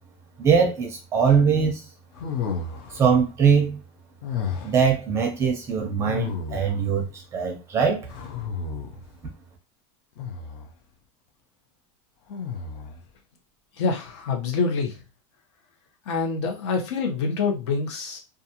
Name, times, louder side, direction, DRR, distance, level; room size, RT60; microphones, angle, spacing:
voice 1, 0.4-1.8 2.9-3.8 4.6-8.1, right 6 dB, 15° right, 2 dB, 0.5 m, -21 dB
sound 1, 2.1-3.1 4.2-4.9 6.1-6.9 8.1-9.1 10.2-10.7 12.3-13.0, left 6 dB, 50° left, 0.5 m, -32 dB
voice 2, 13.8-15.0 16.0-18.2, left 4 dB, 70° left, 2 dB, 0.9 m, -26 dB
2.5 x 2.4 x 2.8 m, 0.28 s
supercardioid pair, 175°, 16 cm